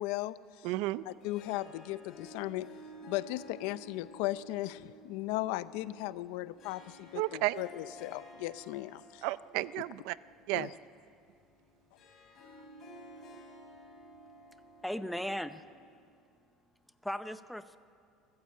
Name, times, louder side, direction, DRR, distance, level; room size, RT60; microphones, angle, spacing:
voice 1, 0.0-0.7 1.1-2.7 3.0-9.3 10.5-10.7, left 17 dB, 80° left, 16 dB, 0.6 m, -37 dB
voice 2, 0.6-1.0 7.1-7.6 9.2-10.2 10.5-10.7, right 18 dB, 70° right, 17 dB, 0.5 m, -32 dB
Harp, 0.9-16.2, equal, 35° left, 3.9 m, -54 dB
voice 3, 14.8-15.6 17.0-17.8, equal, ahead, 11 dB, 0.7 m, -37 dB
26.0 x 14.5 x 8.6 m, 2.4 s
cardioid pair, 160°, 0 cm